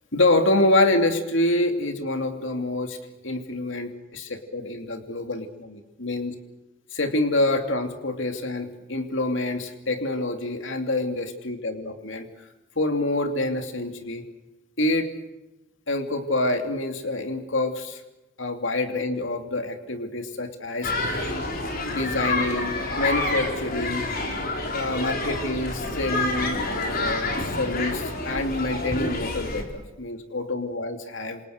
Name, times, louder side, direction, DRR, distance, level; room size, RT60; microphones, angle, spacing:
voice 1, 0.1-3.0 3.2-6.3 6.9-12.3 12.8-14.2 14.8-15.1 15.9-18.0 18.4-21.2 21.9-24.1 24.7-31.4, left 2 dB, 70° left, 6 dB, 2.8 m, -26 dB
sound 1, 20.8-29.6, left 2 dB, 50° left, 4.6 m, -28 dB
28.0 x 28.0 x 6.7 m, 1.0 s
head